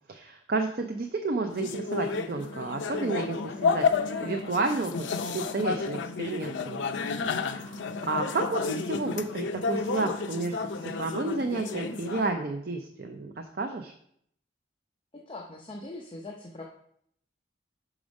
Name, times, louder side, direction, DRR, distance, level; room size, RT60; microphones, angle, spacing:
voice 1, 0.1-3.9 4.2-4.9 5.2-6.8 7.3-10.5 10.8-13.9, right 3 dB, 50° right, 5 dB, 0.5 m, -31 dB
sound 1, 1.5-12.3, left 4 dB, 80° left, 0.5 m, -31 dB
voice 2, 15.1-16.6, left 2 dB, 25° left, 0 dB, 0.6 m, -41 dB
6.1 x 4.9 x 5.2 m, 0.69 s
head